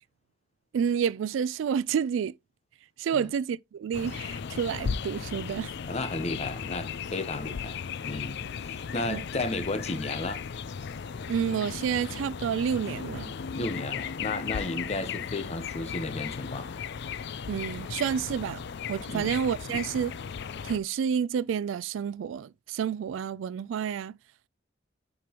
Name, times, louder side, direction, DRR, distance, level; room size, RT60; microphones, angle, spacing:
voice 1, 0.7-2.3 3.0-5.7 9.1-9.2 11.3-13.3 17.5-18.6 18.9-20.1 20.6-24.2, right 7 dB, 70° right, 0.3 m, -29 dB
sound 1, 3.9-20.8, left 6 dB, 60° left, 0.4 m, -36 dB
voice 2, 5.9-7.8 8.0-10.4 13.5-16.7 19.1-19.3, left 2 dB, 35° left, 0.9 m, -33 dB
7.8 x 5.2 x 2.9 m
head